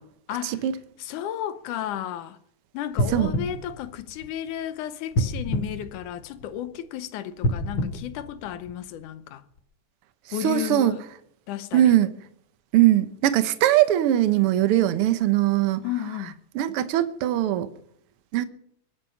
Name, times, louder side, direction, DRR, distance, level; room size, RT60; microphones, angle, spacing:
voice 1, 0.3-0.7 1.0-2.4 2.7-9.4 10.3-11.0 11.5-12.0 15.8-16.4, left 11 dB, 85° left, 2.3 m, -33 dB
sound 1, 2.9-4.6 5.1-6.7 7.3-9.0 9.6-9.7, left 1 dB, 45° left, 2.5 m, -29 dB
voice 2, 10.4-10.9 11.7-12.1 12.7-15.8 16.5-17.7 18.3-18.5, right 13 dB, 65° right, 1.5 m, -20 dB
23.5 x 8.8 x 5.8 m
omnidirectional pair, 3.5 m